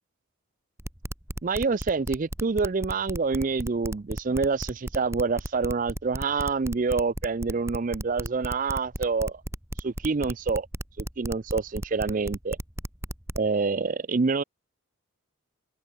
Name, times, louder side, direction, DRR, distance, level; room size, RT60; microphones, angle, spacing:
sound 1, 0.8-13.5, right 1 dB, 15° right, 2.8 m, -34 dB
voice 1, 1.4-9.4 9.8-10.7 11.0-12.6 13.4-14.4, right 4 dB, 40° right, 0.5 m, -27 dB
open air
head